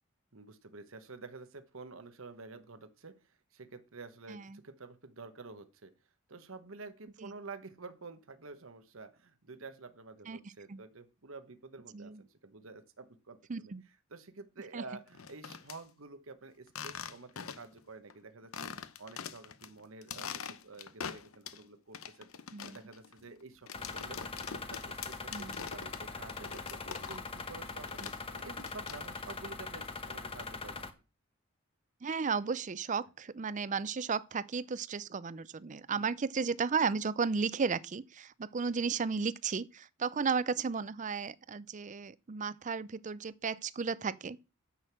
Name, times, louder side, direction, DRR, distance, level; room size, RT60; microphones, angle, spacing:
voice 1, 0.3-5.9 6.3-13.7 14.1-22.3 22.7-24.2 24.5-30.8 35.9-36.1, right 3 dB, 70° right, 1.1 m, -50 dB
voice 2, 4.3-4.6 7.2-7.3 10.3-10.4 10.7-10.8 11.9-12.2 13.5-13.8 14.7-14.8 22.5-22.8 25.3-25.5 32.0-44.4, right 5 dB, 35° right, 0.5 m, -34 dB
sound 1, 15.1-15.8 16.7-17.8 18.1-18.2 18.5-19.7 20.0-21.6 21.9-27.4 27.7-29.3, left 7 dB, 80° left, 0.8 m, -43 dB
sound 2, 23.7-30.9, left 4 dB, 25° left, 1.0 m, -42 dB
10.0 x 6.4 x 6.1 m
head